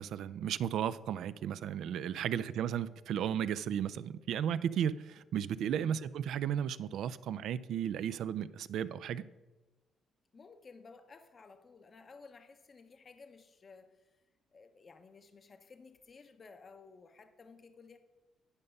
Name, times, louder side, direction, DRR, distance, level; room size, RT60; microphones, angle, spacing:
voice 1, 0.0-9.2, right 9 dB, 75° right, 15 dB, 0.3 m, -34 dB
voice 2, 2.2-2.5 5.7-6.0 10.3-14.2 14.5-18.0, left 4 dB, 40° left, 8 dB, 0.6 m, -56 dB
9.8 x 5.3 x 5.4 m, 1.2 s
cardioid pair, 80°, 0 cm